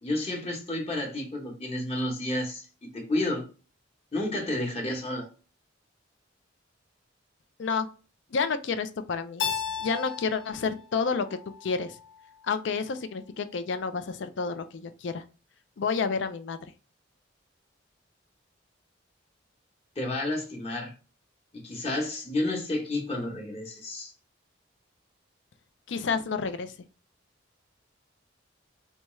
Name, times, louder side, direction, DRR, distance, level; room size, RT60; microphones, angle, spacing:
voice 1, 0.0-3.5 4.1-5.3 20.0-20.9 21.5-24.1, left 1 dB, 35° left, 0.9 m, -31 dB
voice 2, 8.3-9.4 9.8-11.3 11.6-12.0 12.4-15.2 15.8-16.6 25.9-26.7, left 5 dB, 65° left, 0.4 m, -29 dB
Keyboard (musical), 9.4-12.2, left 7 dB, 85° left, 1.2 m, -35 dB
4.2 x 2.3 x 3.0 m
head